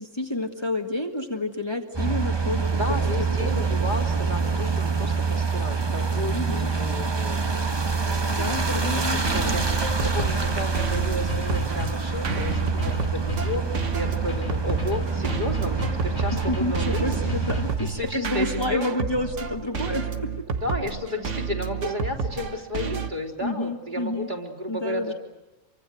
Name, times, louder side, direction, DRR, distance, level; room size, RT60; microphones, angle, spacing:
voice 1, 0.0-2.7 3.2-3.5 6.3-6.7 8.3-9.6 16.5-20.5 23.4-24.3 24.7-25.1, left 1 dB, 20° left, 3 dB, 1.9 m, -29 dB
sound 1, 1.9-17.8, right 4 dB, 20° right, 1.4 m, -26 dB
voice 2, 2.7-7.4 8.0-9.6 10.0-13.6 13.9-17.3 17.8-18.9 20.6-25.1, left 1 dB, 35° right, 1 dB, 3.9 m, -33 dB
sound 2, 9.2-23.1, right 5 dB, 65° right, 1.7 m, -31 dB
sound 3, 10.3-18.2, equal, 60° left, 4.0 m, -35 dB
28.0 x 24.5 x 7.9 m, 1.1 s
omnidirectional pair, 1.3 m